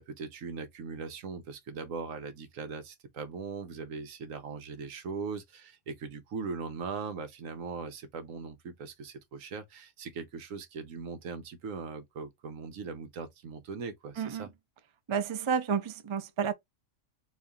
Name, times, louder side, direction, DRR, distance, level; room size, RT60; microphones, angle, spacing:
voice 1, 0.0-14.5, right 5 dB, 80° right, 1.2 m, -40 dB
voice 2, 14.2-14.5 15.1-16.5, right 7 dB, 45° right, 0.4 m, -30 dB
4.1 x 2.7 x 3.5 m
omnidirectional pair, 1.4 m